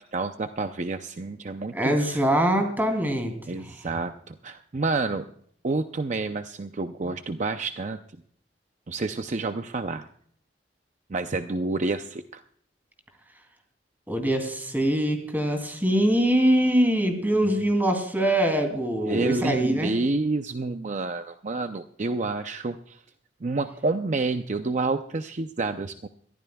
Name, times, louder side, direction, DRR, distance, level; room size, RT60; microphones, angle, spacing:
voice 1, 0.0-2.2 3.5-5.2 5.6-8.0 8.9-10.1 11.1-12.4 17.4-17.5 19.1-23.0 23.4-26.1, right 3 dB, 45° right, 8 dB, 0.6 m, -29 dB
voice 2, 1.7-3.3 14.1-19.9, right 1 dB, 10° right, 4 dB, 2.8 m, -23 dB
22.5 x 14.5 x 2.3 m, 0.62 s
head